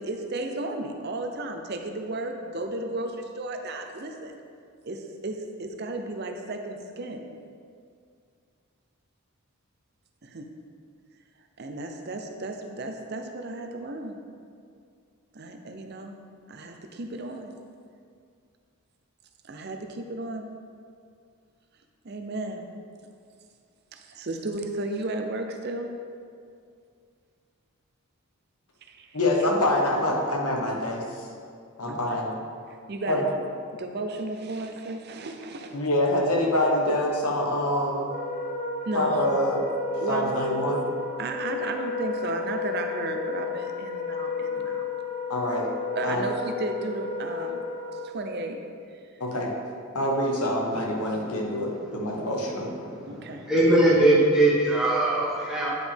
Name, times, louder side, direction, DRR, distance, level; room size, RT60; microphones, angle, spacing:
voice 1, 0.0-4.4 4.8-7.2 10.2-10.5 11.6-14.1 15.3-16.2 16.5-17.5 19.4-20.5 22.0-22.6 23.9-25.9 28.9-29.2 31.9-32.0 32.7-33.3 33.7-35.8 38.9-39.2 40.0-40.4 40.7-40.8 41.2-44.9 45.9-47.6 48.0-48.6 48.9-49.0 53.1-53.4, right 2 dB, 45° right, 5 dB, 0.6 m, -34 dB
voice 2, 29.1-31.0 31.8-32.3 33.1-33.2 35.7-38.1 38.9-39.6 40.1-40.8 45.3-45.7 46.0-46.3 49.2-49.5 49.9-52.7, left 1 dB, 85° left, 0 dB, 1.2 m, -25 dB
Wind instrument woodwind instrument, 38.0-48.1, left 4 dB, 30° left, 0.7 m, -32 dB
voice 3, 51.2-51.7 52.0-52.3 52.8-55.7, right 1 dB, 5° right, -8 dB, 1.4 m, -22 dB
9.5 x 5.1 x 3.5 m, 2.3 s
head